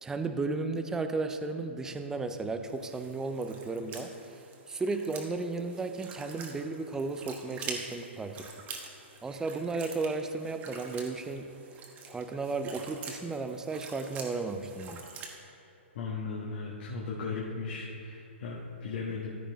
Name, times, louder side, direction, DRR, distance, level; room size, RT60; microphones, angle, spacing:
voice 1, 0.0-4.1 4.7-8.5 9.2-11.5 12.1-15.0, right 3 dB, 10° right, 7 dB, 0.4 m, -34 dB
sound 1, 2.7-15.4, right 4 dB, 25° right, 1.1 m, -46 dB
voice 2, 15.9-19.4, left 4 dB, 55° left, -3 dB, 1.3 m, -36 dB
14.0 x 4.7 x 4.0 m, 2.8 s
hypercardioid pair, 135°, 7 cm